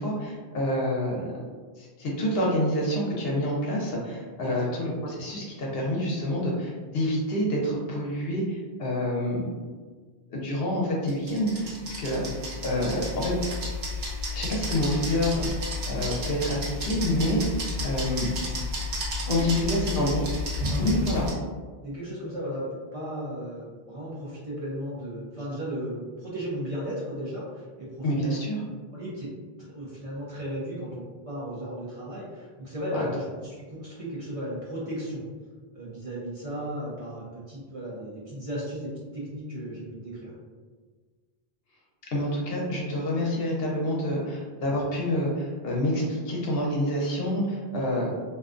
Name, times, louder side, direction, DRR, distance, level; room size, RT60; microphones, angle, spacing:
voice 1, 0.0-1.3 1.8-9.4 10.3-12.3 12.6-13.3 14.3-15.5 15.9-18.4 19.3-20.2 20.8-21.3 28.0-28.6 32.9-33.0 42.1-48.1, left 1 dB, 75° left, -3 dB, 0.9 m, -27 dB
sound 1, 11.1-21.3, left 2 dB, 75° right, 1.0 m, -32 dB
voice 2, 20.7-21.1 21.8-22.7 22.9-28.4 28.9-29.3 29.6-35.2 35.7-40.3, equal, 40° right, -8 dB, 0.6 m, -35 dB
2.5 x 2.2 x 2.4 m, 1.5 s
omnidirectional pair, 1.0 m